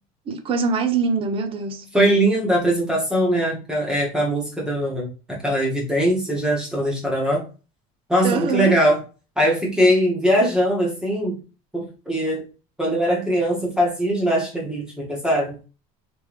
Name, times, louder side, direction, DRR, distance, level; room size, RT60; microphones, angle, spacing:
voice 1, 0.3-1.9 8.2-8.8, right 5 dB, 30° right, 0.6 m, -23 dB
voice 2, 1.9-7.4 8.1-9.0 9.4-11.4 11.7-12.4 12.8-15.6, equal, 5° right, 1.3 m, -21 dB
3.4 x 3.2 x 3.0 m
cardioid pair, 160°, 17 cm